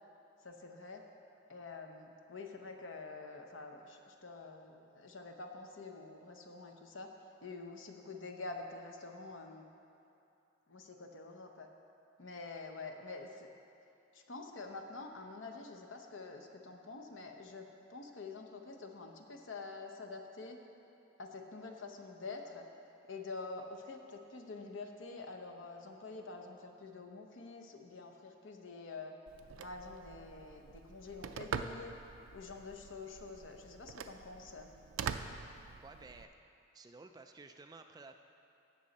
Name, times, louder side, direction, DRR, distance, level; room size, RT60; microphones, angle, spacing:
voice 1, 0.4-1.1 1.5-7.1 7.4-9.7 10.7-11.7 12.2-13.5 14.1-20.6 21.2-22.7 23.1-29.1 29.6-31.9 32.3-34.7, left 3 dB, 75° left, 4 dB, 0.9 m, -47 dB
Telephone, 29.3-36.2, right 6 dB, 90° right, 0.4 m, -45 dB
voice 2, 35.8-36.3 36.7-38.2, right 3 dB, 20° right, 6 dB, 0.3 m, -53 dB
16.0 x 6.3 x 4.1 m, 2.7 s
head